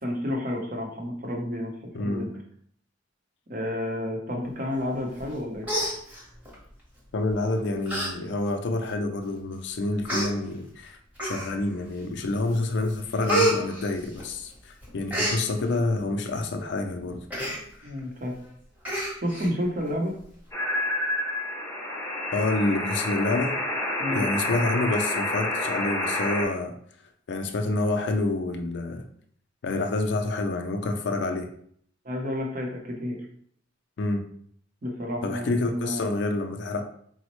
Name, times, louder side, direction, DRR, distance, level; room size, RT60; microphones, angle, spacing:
voice 1, 0.0-2.3 3.5-5.7 17.8-18.4 19.2-20.1 24.0-24.3 32.0-33.2 34.8-36.0, left 1 dB, 45° right, 0 dB, 0.7 m, -30 dB
voice 2, 1.9-2.3 7.1-11.0 11.2-17.3 22.3-23.6 24.1-26.7 27.3-29.0 29.6-31.5 34.0-34.2 35.2-36.8, left 2 dB, 60° left, 6 dB, 0.4 m, -28 dB
Human voice, 5.2-5.4 5.6-6.5 7.3-7.5 7.9-8.1 8.5-8.6 9.4-9.5 10.0-10.3 11.2-11.7 12.2-12.6 12.8-14.5 14.8-15.4 17.3-17.6 18.0-18.1 18.3-18.5 18.8-19.5 19.9-20.0, right 1 dB, 10° right, 0.9 m, -28 dB
sound 1, 20.5-26.5, left 1 dB, 15° left, 0.5 m, -29 dB
4.0 x 2.0 x 3.0 m, 0.63 s
head